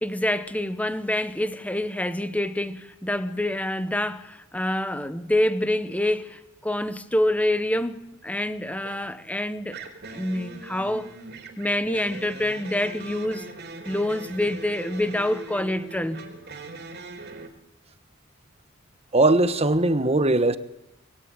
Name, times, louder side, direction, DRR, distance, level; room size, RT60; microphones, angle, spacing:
voice 1, 0.0-9.8 10.1-11.1 11.6-13.5 13.9-16.2, left 1 dB, 5° left, 1.3 m, -26 dB
sound 1, 8.8-9.1 9.7-17.5, right 3 dB, 55° right, 3.7 m, -41 dB
voice 2, 19.1-20.6, right 2 dB, 30° right, 1.4 m, -20 dB
25.5 x 21.5 x 9.1 m
head